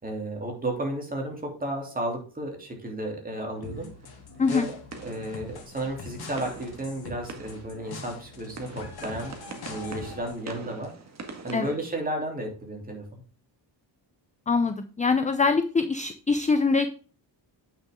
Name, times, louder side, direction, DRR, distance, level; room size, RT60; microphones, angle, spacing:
voice 1, 0.0-3.9 4.5-4.7 5.0-9.3 9.7-10.9 11.4-13.0, right 1 dB, 20° right, 1 dB, 3.2 m, -33 dB
sound 1, 3.5-12.6, right 3 dB, 35° right, 1.8 m, -45 dB
sound 2, 3.6-10.4, left 4 dB, 55° left, 2.5 m, -43 dB
voice 2, 14.5-16.9, left 4 dB, 15° left, 9 dB, 0.6 m, -23 dB
8.9 x 6.4 x 3.7 m, 0.39 s
cardioid pair, 135°, 46 cm